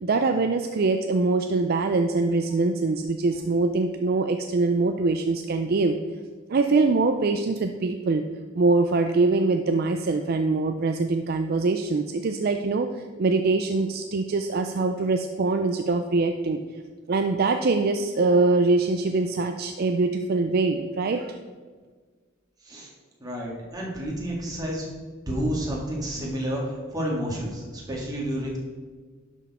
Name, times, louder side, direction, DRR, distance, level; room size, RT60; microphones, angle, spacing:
voice 1, 0.0-6.0 6.5-8.2 8.5-12.9 13.2-16.6 17.1-21.4, right 3 dB, 50° right, 6 dB, 0.4 m, -23 dB
voice 2, 23.2-24.8 25.3-28.6, equal, 20° right, -3 dB, 2.1 m, -30 dB
11.0 x 6.4 x 4.2 m, 1.5 s
head